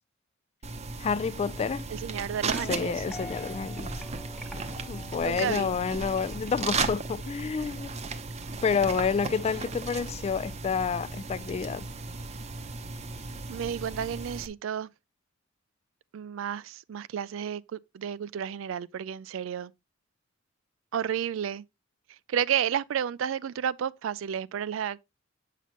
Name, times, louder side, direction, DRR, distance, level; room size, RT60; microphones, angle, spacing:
sound 1, 0.6-14.5, right 3 dB, 35° right, 0.7 m, -36 dB
voice 1, 1.0-1.9 2.7-3.9 4.9-7.9 8.6-11.9, left 6 dB, 30° left, 0.3 m, -29 dB
voice 2, 1.9-2.9 5.2-5.7 13.5-14.9 16.1-19.7 20.9-21.6 22.3-25.0, right 8 dB, 70° right, 0.3 m, -31 dB
sound 2, 2.5-6.5, left 2 dB, 5° left, 0.8 m, -46 dB
8.3 x 5.8 x 2.9 m
head